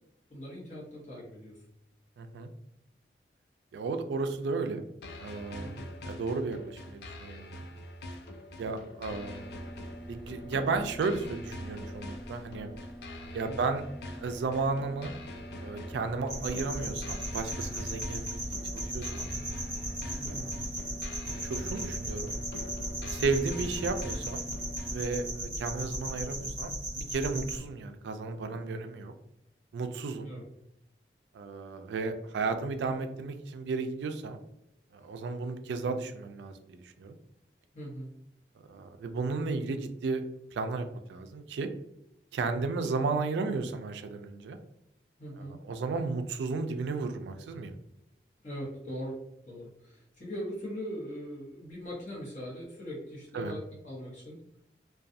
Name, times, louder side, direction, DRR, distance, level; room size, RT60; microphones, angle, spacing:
voice 1, 0.3-1.6 5.6-5.9 8.6-8.8 13.5-13.6 20.1-20.5 30.2-30.4 35.2-35.3 37.7-38.1 45.2-45.6 48.4-49.2 49.4-54.4, equal, 45° left, -5 dB, 1.0 m, -41 dB
voice 2, 2.2-2.5 3.7-4.8 5.2-5.8 6.0-7.7 8.6-9.5 10.1-12.7 13.3-13.8 14.1-15.1 15.6-18.5 18.7-19.3 20.2-20.7 21.4-22.3 23.0-24.4 24.9-29.1 29.7-30.3 31.3-34.4 34.9-37.2 38.7-40.2 40.5-41.7 42.3-44.6 45.4-47.7 53.3-53.6, right 4 dB, 85° right, 8 dB, 0.3 m, -34 dB
sound 1, 5.0-25.0, left 1 dB, 70° left, 0.3 m, -44 dB
sound 2, 9.1-25.4, equal, 5° left, 0.7 m, -47 dB
sound 3, 16.3-27.6, right 1 dB, 15° right, 1.1 m, -37 dB
2.4 x 2.2 x 2.6 m, 0.79 s
head